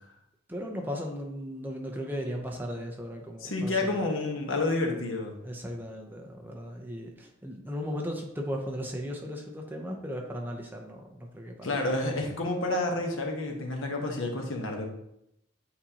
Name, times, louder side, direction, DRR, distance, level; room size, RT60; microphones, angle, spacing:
voice 1, 0.5-4.1 5.4-11.7, equal, 10° right, 1 dB, 0.7 m, -36 dB
voice 2, 3.4-5.3 11.6-14.9, left 2 dB, 75° left, 2 dB, 1.1 m, -29 dB
8.6 x 4.2 x 2.9 m, 0.79 s
head